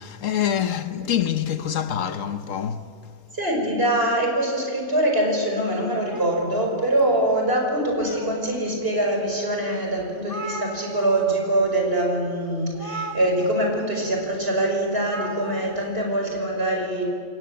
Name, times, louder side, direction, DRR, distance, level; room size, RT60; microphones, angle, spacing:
voice 1, 0.0-2.9, left 9 dB, 75° left, 1.3 m, -26 dB
voice 2, 3.3-17.1, right 1 dB, 45° right, 5.4 m, -23 dB
sound 1, 6.1-7.3 7.8-8.7 9.3-9.4 9.7-9.8 10.0-11.4 11.6-11.9 12.7-13.8 15.0-15.8, right 1 dB, 15° left, 2.9 m, -37 dB
28.0 x 18.0 x 7.6 m
omnidirectional pair, 1.4 m